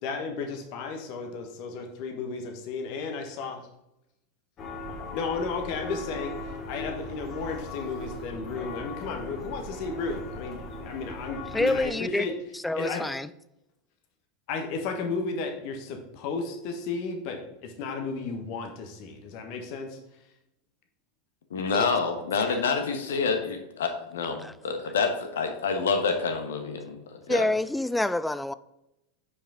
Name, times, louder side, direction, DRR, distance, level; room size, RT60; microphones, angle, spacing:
voice 1, 0.0-3.6 5.1-6.3 6.7-12.3 12.7-13.1 14.5-20.0, left 4 dB, 50° left, 1.3 m, -33 dB
sound 1, 4.6-11.9, left 2 dB, 35° left, 1.9 m, -38 dB
voice 2, 11.5-12.3 12.6-13.3 21.7-21.9 22.5-22.6 24.4-24.5 27.3-28.5, left 2 dB, 5° left, 0.3 m, -27 dB
voice 3, 21.5-27.0 27.3-27.5, left 5 dB, 70° left, 1.2 m, -27 dB
8.5 x 5.3 x 3.7 m
figure-of-eight pair, 85°, 0 cm